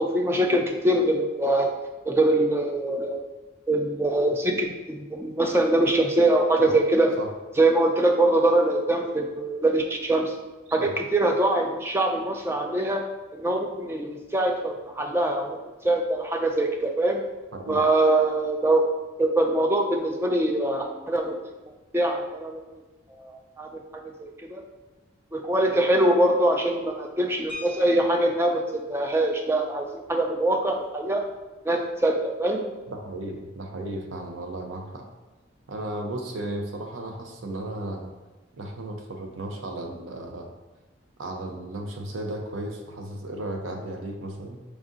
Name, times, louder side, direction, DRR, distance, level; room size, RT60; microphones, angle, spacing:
voice 1, 0.0-1.7 2.0-3.2 3.7-7.1 7.6-10.3 10.7-13.0 13.3-15.6 15.8-17.2 17.7-18.8 19.2-21.4 21.9-22.6 23.2-24.6 25.3-31.2 31.7-32.6, right 1 dB, 10° right, 3 dB, 0.3 m, -23 dB
sound 1, 27.5-28.6 30.0-30.1 30.5-30.7 31.1-31.3, left 2 dB, 25° left, 0.7 m, -42 dB
voice 2, 32.9-35.1 35.7-38.1 38.5-40.5 41.2-44.6, right 1 dB, 85° right, 3 dB, 0.7 m, -34 dB
4.9 x 2.6 x 3.7 m, 1.1 s
head